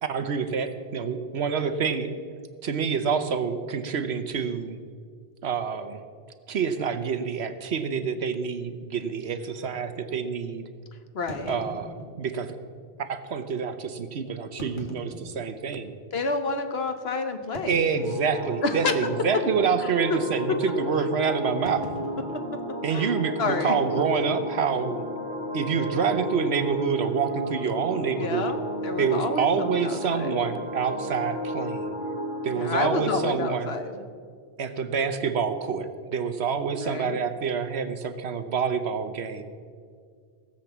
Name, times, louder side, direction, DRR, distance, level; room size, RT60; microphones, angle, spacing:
voice 1, 0.0-2.2 2.6-4.8 5.4-6.0 6.5-10.7 11.5-12.6 13.0-15.9 17.7-21.9 22.8-25.0 25.5-28.5 29.0-31.9 32.4-33.7 34.6-39.4, right 6 dB, 75° right, 10 dB, 1.2 m, -27 dB
sound 1, 6.5-6.7 7.5-7.6 7.9-8.0 8.6-8.7 11.3-12.5 13.3-13.4 14.4-15.9 16.4-16.5 17.5-18.6 18.9-19.3 19.5-19.9 21.7-23.3, equal, 50° left, 2.0 m, -42 dB
voice 2, 11.1-11.6 16.1-17.8 18.6-18.9 19.8-20.2 22.9-23.7 28.1-28.6 28.8-30.5 32.5-34.0 36.7-37.2, left 3 dB, 70° left, 7 dB, 1.3 m, -29 dB
sound 2, 18.0-33.3, left 1 dB, 15° left, 3.4 m, -33 dB
17.5 x 7.4 x 7.3 m, 2.1 s
omnidirectional pair, 1.1 m